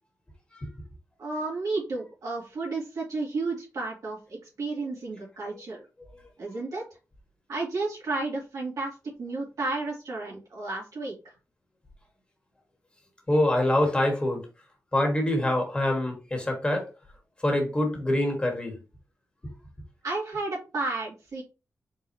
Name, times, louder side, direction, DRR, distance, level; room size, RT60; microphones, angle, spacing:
voice 1, 1.2-5.9 6.4-6.8 7.5-11.1 20.0-21.4, right 3 dB, 80° right, -4 dB, 2.1 m, -32 dB
voice 2, 13.3-14.4 14.9-16.9 17.4-18.8 19.4-19.5, left 1 dB, 20° left, 2 dB, 1.2 m, -25 dB
4.4 x 3.5 x 2.7 m, 0.30 s
wide cardioid pair, 140°, 6 cm